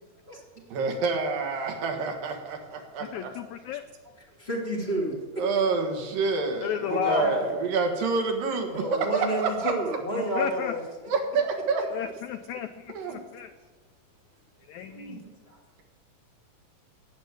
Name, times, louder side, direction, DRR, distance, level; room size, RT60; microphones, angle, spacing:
voice 1, 0.7-3.3 5.4-9.7 11.1-11.8 12.9-13.2 14.9-15.2, right 4 dB, 80° right, 3 dB, 3.4 m, -28 dB
voice 2, 3.0-3.8 6.6-7.3 10.1-10.8 11.9-13.5 14.7-15.2, left 11 dB, 85° left, 9 dB, 1.6 m, -33 dB
voice 3, 4.4-5.1 6.8-7.7 8.7-10.8 14.9-15.0 15.2-15.8, right 1 dB, 20° left, -3 dB, 2.5 m, -30 dB
16.5 x 7.3 x 8.2 m, 1.3 s
omnidirectional pair, 4.0 m